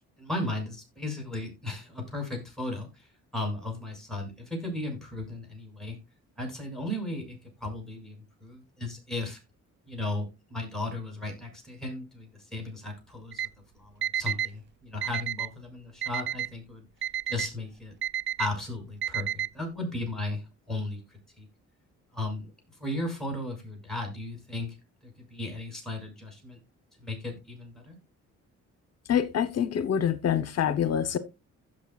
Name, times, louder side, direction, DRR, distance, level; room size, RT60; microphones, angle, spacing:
voice 1, 0.2-6.0 6.4-9.4 9.9-13.4 13.7-16.9 17.3-17.9 18.4-21.5 22.1-22.5 22.8-24.8 25.0-26.6 27.0-28.0, left 2 dB, ahead, 6.8 m, -36 dB
Alarm, 13.3-13.5 14.0-14.5 15.0-15.5 16.0-16.5 17.0-17.5 18.0-18.5 19.0-19.5, right 10 dB, 40° right, 0.4 m, -30 dB
voice 2, 29.1-31.2, left 8 dB, 55° left, 1.0 m, -26 dB
16.0 x 6.4 x 2.4 m
cardioid pair, 90°, 30 cm